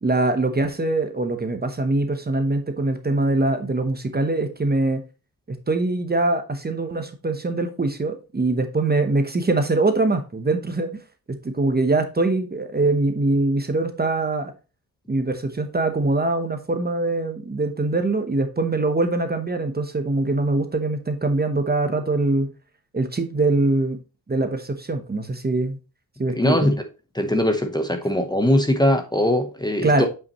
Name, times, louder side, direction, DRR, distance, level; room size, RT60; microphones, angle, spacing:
voice 1, 0.0-5.0 5.5-11.0 11.3-14.5 15.1-22.5 22.9-24.0 24.3-25.8 26.2-26.7 29.8-30.1, right 2 dB, 25° right, 1.0 m, -23 dB
voice 2, 26.3-26.8 27.1-30.1, left 1 dB, 10° left, 1.0 m, -21 dB
8.3 x 5.7 x 3.0 m
wide cardioid pair, 105°, 39 cm